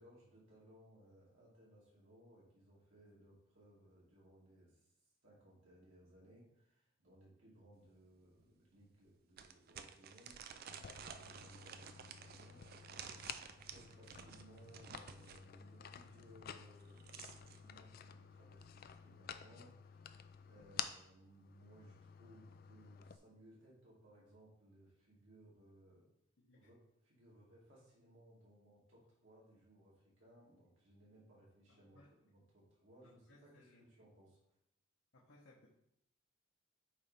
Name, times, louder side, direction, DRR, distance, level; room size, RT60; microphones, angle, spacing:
voice 1, 0.0-4.9 5.2-10.6 11.1-13.1 13.4-26.1 26.5-26.8 27.0-33.2 33.6-34.4, right 1 dB, 70° right, -6 dB, 2.6 m, -63 dB
sound 1, 7.9-8.0 8.4-8.5 9.4-15.5 16.7-17.6, right 7 dB, 45° right, 0.4 m, -53 dB
sound 2, 10.7-23.2, left 8 dB, 45° left, 0.3 m, -52 dB
voice 2, 26.4-26.7 31.7-32.1 33.0-33.8 35.1-35.7, left 2 dB, 65° left, -4 dB, 0.9 m, -65 dB
8.5 x 3.2 x 4.2 m, 0.79 s
head